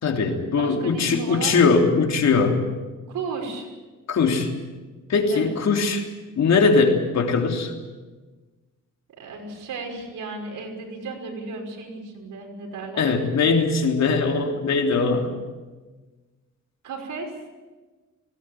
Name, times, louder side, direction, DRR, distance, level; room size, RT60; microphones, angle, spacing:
voice 1, 0.0-2.6 4.1-4.6 5.1-6.1 6.4-7.7 13.0-15.3, left 4 dB, 60° left, 3 dB, 3.3 m, -20 dB
voice 2, 0.6-1.8 3.1-3.7 5.3-5.6 9.2-13.1 16.8-17.4, right 4 dB, 80° right, 2 dB, 5.7 m, -34 dB
20.0 x 18.0 x 9.3 m, 1.3 s
cardioid pair, 120°, 31 cm